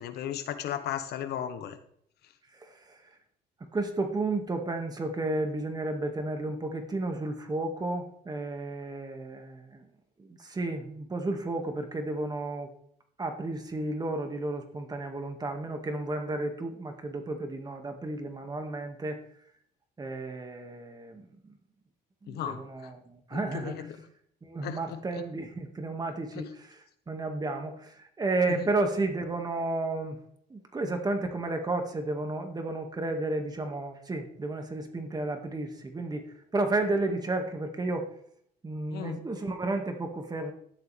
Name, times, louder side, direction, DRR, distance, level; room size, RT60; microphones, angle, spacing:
voice 1, 0.0-1.8 22.3-22.9 23.3-24.0 24.6-25.2 26.3-26.5 28.5-28.7 38.9-39.2, left 10 dB, 75° left, 8 dB, 1.5 m, -36 dB
voice 2, 2.5-3.0 3.7-9.9 10.2-12.7 13.2-19.2 20.0-21.5 22.2-23.7 24.4-26.8 27.1-30.2 30.5-38.1 38.6-40.5, right 2 dB, 25° right, 4 dB, 2.0 m, -32 dB
13.0 x 10.5 x 3.5 m, 0.65 s
cardioid pair, 110°, 17 cm